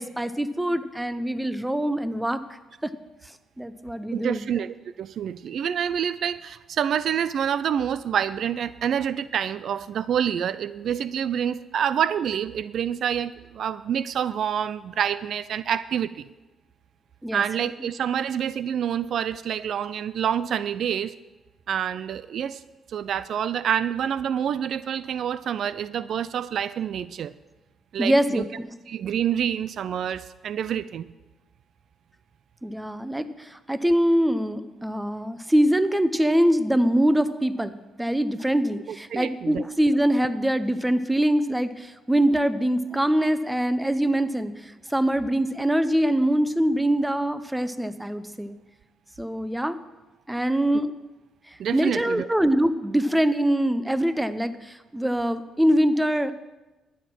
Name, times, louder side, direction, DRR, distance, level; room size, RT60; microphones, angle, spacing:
voice 1, 0.0-2.4 2.8-2.9 3.2-4.5 17.2-17.7 28.0-28.7 32.6-48.6 49.2-49.8 50.3-50.9 51.5-56.3, right 1 dB, 5° right, 13 dB, 0.7 m, -24 dB
voice 2, 4.1-16.2 17.3-21.2 21.7-22.6 22.9-27.3 27.9-28.5 28.9-31.1 39.1-39.6 51.6-52.3, right 8 dB, 65° right, 16 dB, 0.4 m, -27 dB
12.5 x 9.4 x 6.1 m, 1.1 s
cardioid pair, 90°, 0 cm